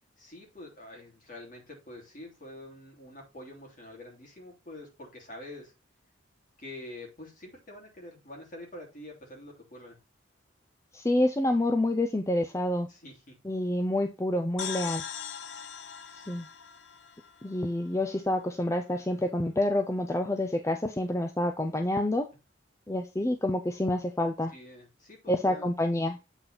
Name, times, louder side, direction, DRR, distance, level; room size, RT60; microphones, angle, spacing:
voice 1, 0.2-5.7 6.6-10.0 12.9-13.3 24.5-25.7, left 1 dB, 45° left, -1 dB, 3.2 m, -46 dB
voice 2, 10.9-12.9 13.4-15.0 16.1-16.5 17.4-22.3 22.9-24.5 25.3-26.2, left 1 dB, 15° left, 6 dB, 0.5 m, -28 dB
sound 1, 14.6-18.2, left 8 dB, 70° left, 0.6 m, -40 dB
8.0 x 3.9 x 4.3 m, 0.27 s
head